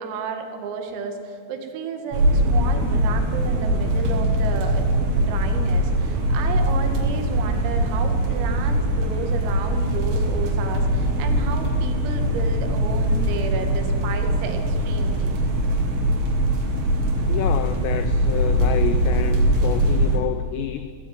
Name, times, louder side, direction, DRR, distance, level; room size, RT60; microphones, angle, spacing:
voice 1, 0.0-4.9 5.2-15.4, right 5 dB, 85° right, 5 dB, 4.8 m, -32 dB
sound 1, 2.1-20.2, right 1 dB, 70° right, 5.0 m, -21 dB
voice 2, 17.3-20.9, left 10 dB, 90° left, 11 dB, 2.4 m, -28 dB
17.5 x 16.0 x 9.4 m, 2.5 s
omnidirectional pair, 5.9 m